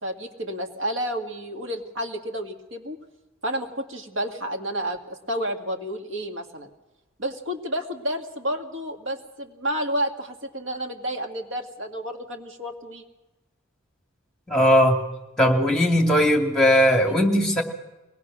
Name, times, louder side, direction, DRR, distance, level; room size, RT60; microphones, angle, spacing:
voice 1, 0.0-3.0 3.4-6.7 7.2-13.0, equal, 70° right, 3 dB, 2.2 m, -30 dB
voice 2, 14.5-15.0 15.4-17.6, equal, 5° left, 2 dB, 2.5 m, -18 dB
23.0 x 19.0 x 6.2 m, 1.0 s
head